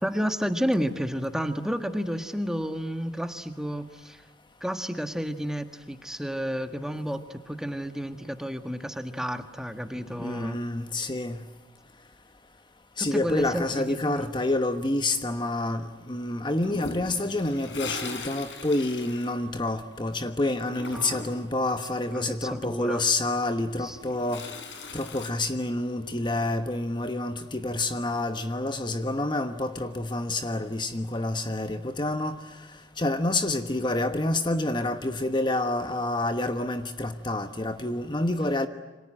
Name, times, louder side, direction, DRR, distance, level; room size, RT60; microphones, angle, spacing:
voice 1, 0.0-4.2 4.6-10.6 13.0-14.4 20.7-21.2 21.8-23.1 23.8-24.0, equal, 5° right, 1.6 m, -31 dB
voice 2, 10.2-11.4 13.0-24.5 24.9-32.4 33.0-38.7, left 2 dB, 25° left, 1.2 m, -28 dB
Toilet flush, 16.6-20.1 20.3-21.5 23.6-25.3, left 3 dB, 75° left, 5.1 m, -39 dB
28.5 x 26.0 x 7.7 m
head